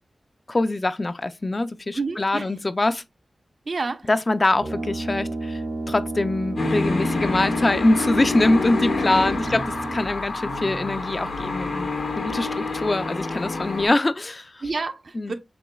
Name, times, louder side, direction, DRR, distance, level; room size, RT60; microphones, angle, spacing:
voice 1, 0.5-3.0 4.1-9.6 9.9-11.9 12.2-14.6 15.2-15.3, left 2 dB, 40° left, 0.4 m, -23 dB
voice 2, 1.9-2.5 2.8-2.9 3.6-4.1 9.1-9.6 14.6-15.3, right 3 dB, 60° right, 0.7 m, -30 dB
Brass instrument, 4.5-10.3, right 2 dB, 90° right, 1.2 m, -32 dB
sound 1, 6.5-13.9, left 3 dB, 90° left, 1.2 m, -27 dB
6.9 x 3.0 x 2.3 m
cardioid pair, 55°, 0 cm